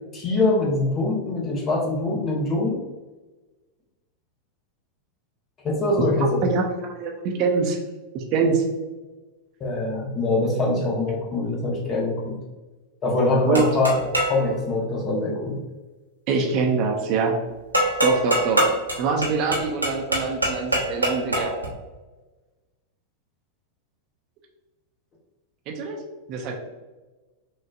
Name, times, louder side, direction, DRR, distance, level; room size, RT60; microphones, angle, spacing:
voice 1, 0.1-2.8 5.6-6.4 9.6-12.4 13.0-14.0 14.3-15.6, left 2 dB, 25° left, 0 dB, 0.9 m, -23 dB
voice 2, 6.9-7.8 8.1-8.6 13.5-13.7 16.3-17.4 18.0-18.7 19.0-21.6 25.7-26.0 26.3-26.5, right 5 dB, 40° right, 1 dB, 0.6 m, -24 dB
sound 1, 13.5-14.4 17.7-21.7, right 1 dB, 85° right, 0.8 m, -24 dB
6.0 x 2.4 x 2.4 m, 1.2 s
figure-of-eight pair, 90°, 0 cm